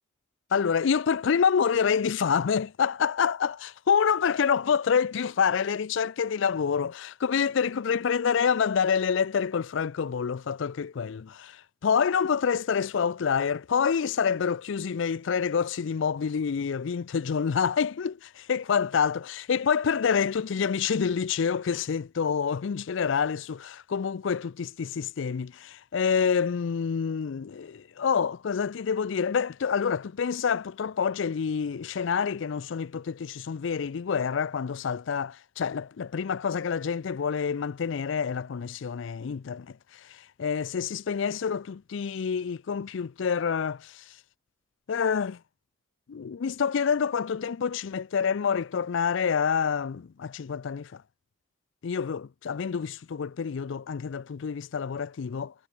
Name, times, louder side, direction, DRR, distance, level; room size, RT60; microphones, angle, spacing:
voice 1, 0.5-44.2 44.9-45.4 46.1-51.0 51.8-55.5, left 6 dB, 65° left, 0.4 m, -27 dB
head